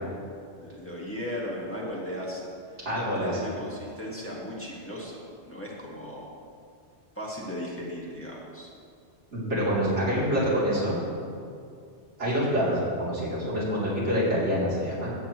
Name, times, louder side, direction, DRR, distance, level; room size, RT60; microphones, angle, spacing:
voice 1, 0.6-2.4 2.8-6.3 7.1-8.7, equal, 10° left, -5 dB, 1.6 m, -36 dB
voice 2, 2.8-3.3 9.3-11.0 12.2-15.1, equal, 85° right, -8 dB, 3.3 m, -26 dB
14.5 x 8.5 x 3.0 m, 2.4 s
omnidirectional pair, 1.2 m